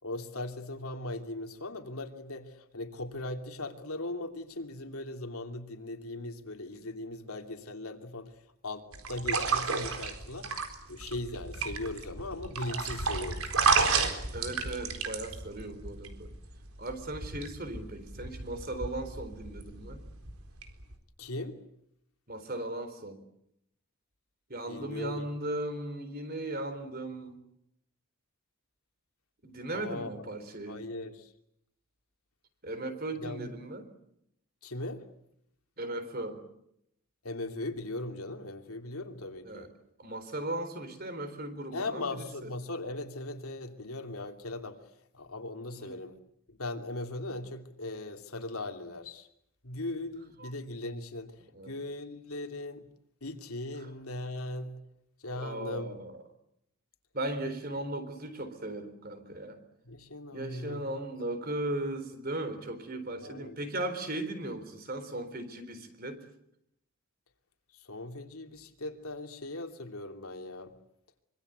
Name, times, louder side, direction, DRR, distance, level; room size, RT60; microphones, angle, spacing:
voice 1, 0.0-13.5 13.9-14.1 21.2-21.6 24.7-25.3 29.7-30.3 30.7-31.3 33.2-33.5 34.6-35.1 37.2-39.7 41.7-46.2 46.5-49.3 49.6-52.9 53.2-54.8 55.2-55.9 59.8-61.1 63.2-63.6 67.7-70.7, left 2 dB, 80° left, 2.9 m, -39 dB
sound 1, 8.9-20.9, right 5 dB, 75° right, 4.2 m, -32 dB
voice 2, 14.3-16.3 16.8-20.0 22.3-23.2 24.5-27.4 29.4-30.9 32.6-33.9 35.8-36.4 39.4-39.7 40.0-42.5 45.7-46.0 50.4-50.5 51.5-51.7 53.8-53.9 55.3-56.2 57.1-59.6 60.3-66.2, right 1 dB, 40° right, 4.0 m, -37 dB
25.5 x 24.0 x 8.1 m
head